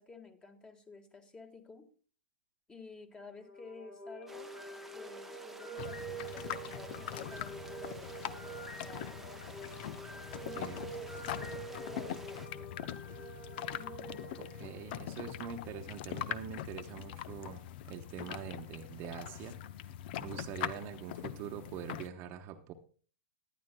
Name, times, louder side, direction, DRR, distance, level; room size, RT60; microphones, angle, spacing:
voice 1, 0.0-1.9 2.7-4.6 4.9-9.6 10.4-12.7 13.8-14.3, left 3 dB, 15° left, 6 dB, 1.5 m, -52 dB
sound 1, 3.3-15.4, right 3 dB, 90° left, 5.0 m, -47 dB
sound 2, 4.3-12.5, right 2 dB, 5° right, 0.8 m, -53 dB
sound 3, 5.8-22.1, left 11 dB, 55° left, 0.7 m, -42 dB
voice 2, 10.5-11.0 14.4-19.6 20.2-22.7, right 8 dB, 40° right, 5 dB, 1.0 m, -44 dB
18.5 x 11.0 x 2.2 m, 0.40 s
hypercardioid pair, 120°, 6 cm